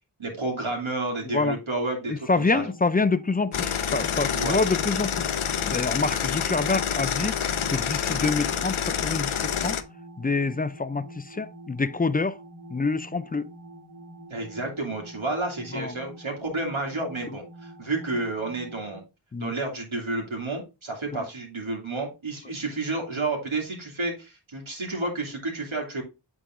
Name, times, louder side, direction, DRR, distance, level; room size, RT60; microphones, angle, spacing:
voice 1, 0.2-2.6 4.3-4.6 14.3-19.0 19.4-26.0, right 2 dB, 80° right, 2.4 m, -30 dB
voice 2, 1.2-1.6 2.1-7.4 7.7-9.8 10.2-12.4 12.7-13.5 15.7-16.0 19.3-19.5 21.1-21.3, left 3 dB, 20° left, 0.3 m, -27 dB
sound 1, 2.5-19.0, right 1 dB, 45° right, 1.6 m, -46 dB
sound 2, 3.5-9.8, left 8 dB, 85° left, 0.7 m, -27 dB
8.4 x 3.7 x 3.6 m
wide cardioid pair, 65°, 47 cm